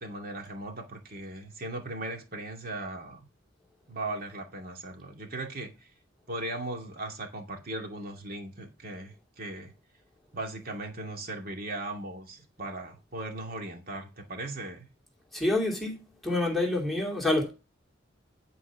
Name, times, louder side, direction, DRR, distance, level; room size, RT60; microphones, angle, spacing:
voice 1, 0.0-3.3 3.9-5.9 6.3-9.7 10.3-14.9, right 2 dB, 50° right, 2.3 m, -38 dB
voice 2, 15.3-17.5, left 2 dB, ahead, 2.6 m, -27 dB
11.5 x 4.7 x 6.0 m
head